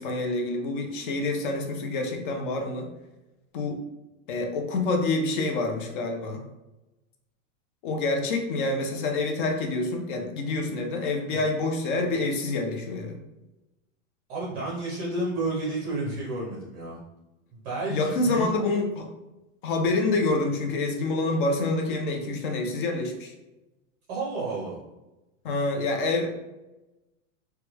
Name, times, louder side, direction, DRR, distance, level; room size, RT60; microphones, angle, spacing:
voice 1, 0.0-2.9 3.5-3.8 4.3-6.4 7.8-13.2 17.9-19.1 19.6-23.3 25.4-26.3, left 2 dB, 40° left, 3 dB, 0.5 m, -27 dB
voice 2, 14.3-17.0 17.5-18.5 24.1-24.7, right 2 dB, 20° right, -6 dB, 0.6 m, -31 dB
3.0 x 2.3 x 2.9 m, 1.0 s
supercardioid pair, 170°, 40 cm